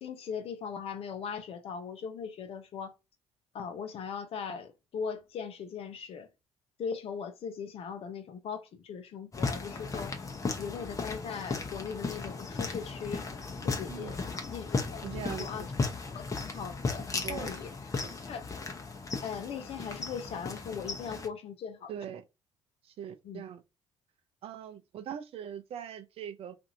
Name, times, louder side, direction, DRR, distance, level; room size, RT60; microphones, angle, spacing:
voice 1, 0.0-2.9 3.5-6.3 6.8-10.2 10.6-13.3 13.6-14.2 14.5-15.7 16.1-17.7 18.3-18.5 19.2-21.9 23.2-23.4, left 6 dB, 55° left, 0.7 m, -39 dB
sound 1, 9.3-21.3, left 4 dB, 30° left, 0.9 m, -36 dB
voice 2, 15.0-15.5 17.2-17.5 18.0-18.1 21.9-22.2 23.0-23.6 24.4-26.5, right 9 dB, 55° right, 0.5 m, -41 dB
2.7 x 2.5 x 2.6 m
hypercardioid pair, 50°, 12 cm